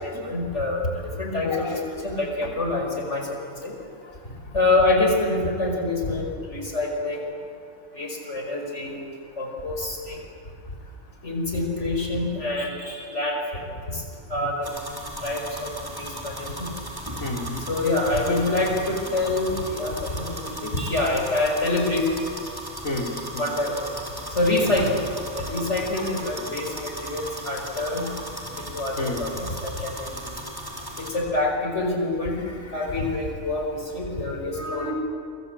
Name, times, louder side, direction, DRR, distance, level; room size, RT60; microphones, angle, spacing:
voice 1, 0.0-3.3 3.6-3.7 4.5-7.4 7.9-9.0 9.4-10.2 11.2-12.7 13.1-14.0 14.3-14.7 15.2-16.7 17.7-22.1 23.4-23.8 24.3-25.0 25.3-28.1 28.6-30.4 31.0-32.4 32.7-34.9, left 2 dB, 60° left, 1 dB, 5.6 m, -26 dB
voice 2, 1.5-2.1 12.6-13.1 14.4-14.5 17.2-17.6 19.9-20.0 20.8-21.0 22.8-23.5 25.9-26.0 29.0-29.2 32.6-32.7, left 2 dB, 85° left, 0 dB, 4.6 m, -33 dB
sound 1, 14.6-31.1, right 1 dB, 15° right, 4.5 m, -36 dB
29.0 x 23.5 x 8.5 m, 2.2 s
omnidirectional pair, 1.4 m